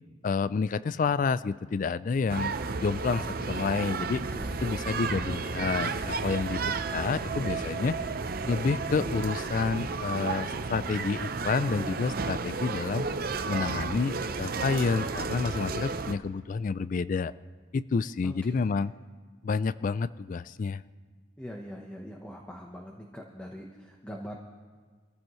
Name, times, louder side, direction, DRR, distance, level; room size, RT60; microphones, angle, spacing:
voice 1, 0.2-2.5 2.8-4.2 4.6-7.9 8.5-13.1 13.5-17.3 17.7-18.9 19.4-20.8, left 4 dB, 40° left, 17 dB, 0.3 m, -29 dB
sound 1, 2.3-16.1, right 4 dB, 50° right, 0.6 m, -32 dB
voice 2, 18.2-18.7 21.4-24.4, equal, 5° left, 0 dB, 1.0 m, -42 dB
25.0 x 14.5 x 3.1 m, 1.5 s
head